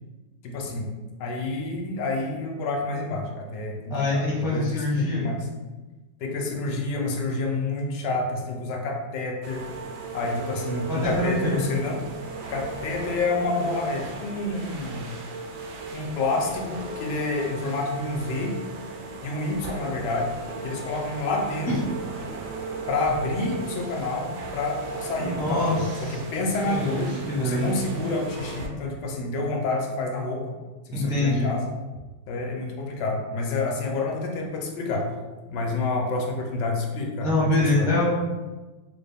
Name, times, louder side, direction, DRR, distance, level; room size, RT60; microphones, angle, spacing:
voice 1, 0.4-0.9 1.2-5.5 6.2-9.6 10.1-12.0 12.5-15.1 15.9-18.5 19.2-20.3 20.6-21.9 22.9-30.5 30.9-31.7 32.3-35.1 35.5-37.9, left 2 dB, 75° left, 1 dB, 1.2 m, -28 dB
voice 2, 3.9-5.3 10.9-11.6 25.2-26.2 26.7-27.6 30.9-31.5 37.2-38.1, left 2 dB, 5° right, -6 dB, 0.4 m, -25 dB
sound 1, 9.4-28.7, right 3 dB, 75° right, 1.1 m, -36 dB
3.9 x 2.1 x 3.4 m, 1.2 s
omnidirectional pair, 1.9 m